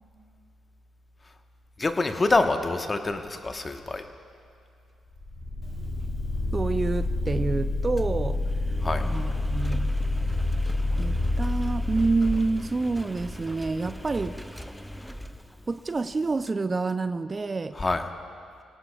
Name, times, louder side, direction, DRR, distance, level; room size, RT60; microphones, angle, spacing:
voice 1, 1.8-4.0 8.8-9.0 17.8-18.0, left 3 dB, 30° left, 6 dB, 1.2 m, -25 dB
sound 1, 5.2-12.8, left 2 dB, 50° left, 2.2 m, -28 dB
Engine, 5.6-16.5, equal, 5° left, 0.8 m, -41 dB
voice 2, 6.5-8.4 9.0-9.9 11.0-14.6 15.7-17.7, right 3 dB, 35° right, 12 dB, 0.5 m, -28 dB
26.5 x 18.5 x 2.4 m, 2.3 s
hypercardioid pair, 45°, 0 cm